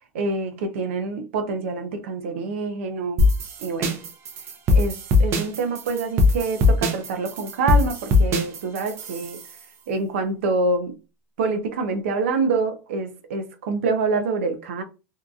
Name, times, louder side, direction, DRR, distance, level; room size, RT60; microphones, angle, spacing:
voice 1, 0.1-3.3 3.6-4.0 4.7-9.4 9.9-11.0 11.4-14.8, right 3 dB, 85° right, 0.6 m, -26 dB
sound 1, 3.2-9.5, left 2 dB, 40° right, 0.6 m, -21 dB
2.7 x 2.4 x 2.3 m
supercardioid pair, 125°, 7 cm